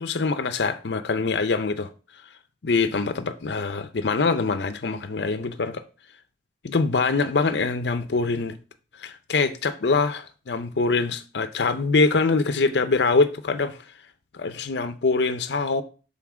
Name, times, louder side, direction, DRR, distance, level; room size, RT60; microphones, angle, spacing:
voice 1, 0.0-1.9 2.6-5.8 6.6-8.5 9.0-13.8 14.3-15.8, left 4 dB, 70° left, 0.6 m, -24 dB
5.9 x 3.9 x 6.2 m
head